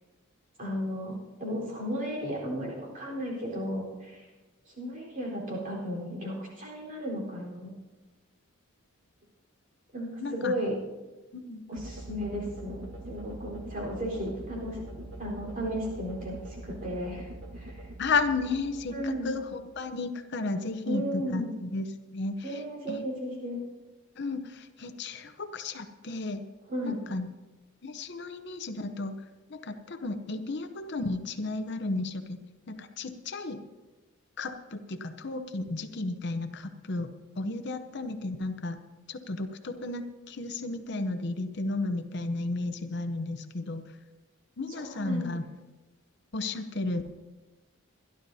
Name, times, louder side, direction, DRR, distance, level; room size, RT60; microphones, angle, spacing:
voice 1, 0.6-4.3 4.7-7.7 9.9-10.8 11.7-17.3 17.6-17.8 18.9-19.3 20.9-21.5 22.4-23.6 26.7-27.0 44.7-45.3, equal, 40° right, -3 dB, 4.0 m, -34 dB
voice 2, 10.2-10.5 11.3-11.6 18.0-21.8 22.1-22.6 22.9-23.1 24.2-26.4 26.8-27.3 27.8-29.1 29.5-33.6 34.4-37.1 37.4-38.8 39.1-44.0 44.6-45.4 46.3-47.1, left 3 dB, 55° left, 9 dB, 0.7 m, -33 dB
sound 1, 11.7-19.9, right 1 dB, 60° right, 1.5 m, -43 dB
24.5 x 11.5 x 2.7 m, 1.2 s
head